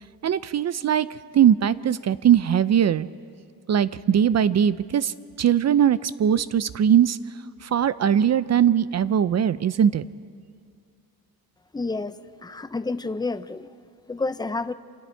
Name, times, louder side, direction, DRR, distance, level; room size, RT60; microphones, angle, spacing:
voice 1, 0.2-1.1 1.3-3.1 3.7-5.1 5.4-7.2 7.7-10.0, right 9 dB, 45° right, 16 dB, 0.5 m, -20 dB
voice 2, 11.7-12.1 12.4-13.7 14.1-14.7, left 3 dB, 10° left, 12 dB, 0.5 m, -29 dB
28.0 x 28.0 x 4.5 m, 2.3 s
wide cardioid pair, 160°, 37 cm